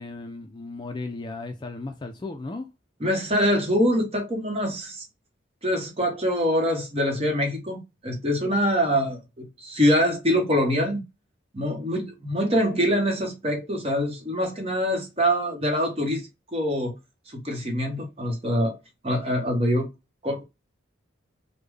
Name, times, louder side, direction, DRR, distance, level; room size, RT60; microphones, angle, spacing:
voice 1, 0.0-2.7, left 3 dB, 20° left, 0.3 m, -35 dB
voice 2, 3.0-5.0 5.6-11.0 11.5-16.9 17.3-18.8 19.0-19.9 20.2-20.4, equal, 30° right, 0.9 m, -24 dB
3.5 x 2.2 x 3.3 m
head